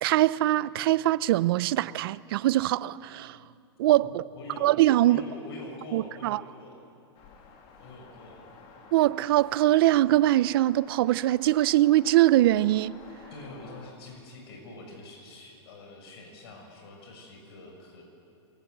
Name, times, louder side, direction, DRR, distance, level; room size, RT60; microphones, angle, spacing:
voice 1, 0.0-3.4 3.8-4.2 4.6-5.2 5.9-6.4 8.9-13.0, right 15 dB, 60° right, 0.6 m, -22 dB
voice 2, 4.0-4.7 5.0-6.8 7.8-8.4 13.3-18.0, left 1 dB, 65° left, 6.7 m, -45 dB
sound 1, 7.1-13.9, left 5 dB, 40° left, 3.0 m, -51 dB
27.5 x 23.0 x 8.0 m
supercardioid pair, 155°, 14 cm